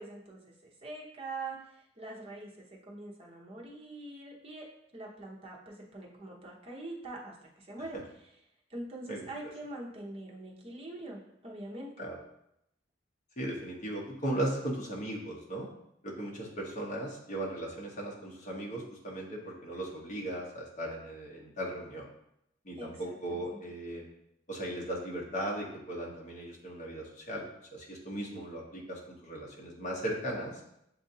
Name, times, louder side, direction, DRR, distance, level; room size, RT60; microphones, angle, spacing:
voice 1, 0.0-4.7 4.9-8.0 8.7-12.1 22.8-23.6, right 2 dB, 30° right, -3 dB, 0.9 m, -44 dB
voice 2, 9.1-9.5 12.0-12.2 13.4-15.7 16.0-22.1 22.6-24.1 24.5-27.4 27.7-30.6, right 1 dB, 40° left, -2 dB, 1.0 m, -37 dB
7.2 x 2.6 x 2.7 m, 0.80 s
head